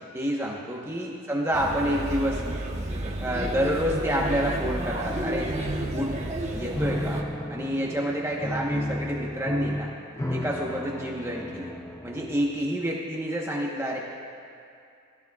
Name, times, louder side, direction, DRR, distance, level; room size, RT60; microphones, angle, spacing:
voice 1, 0.1-2.4 3.2-5.5 5.9-6.2 6.5-7.2 7.5-9.9 10.3-11.7 12.0-14.0, equal, 10° right, -3 dB, 1.1 m, -28 dB
Male speech man speaking / Child speech kid speaking / Chatter, 1.5-7.2, right 1 dB, 30° right, 1.2 m, -31 dB
Piano, 6.7-12.7, left 1 dB, 10° left, 0.6 m, -33 dB
21.5 x 13.5 x 2.4 m, 2.5 s
head